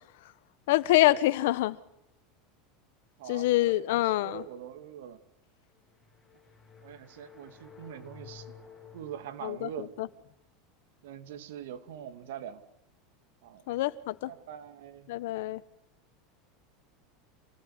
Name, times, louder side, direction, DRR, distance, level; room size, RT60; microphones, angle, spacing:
voice 1, 0.7-1.8 3.3-4.4 9.4-9.7 10.0-10.1 13.7-14.3 15.1-15.6, left 16 dB, 75° left, 1.4 m, -25 dB
voice 2, 3.2-5.2 6.8-8.5 8.9-10.0 11.0-12.6 13.4-13.8 14.3-15.1, right 9 dB, 85° right, 2.6 m, -43 dB
sound 1, 5.7-10.1, left 6 dB, 15° left, 7.8 m, -53 dB
27.5 x 18.5 x 9.8 m
supercardioid pair, 145°, 0 cm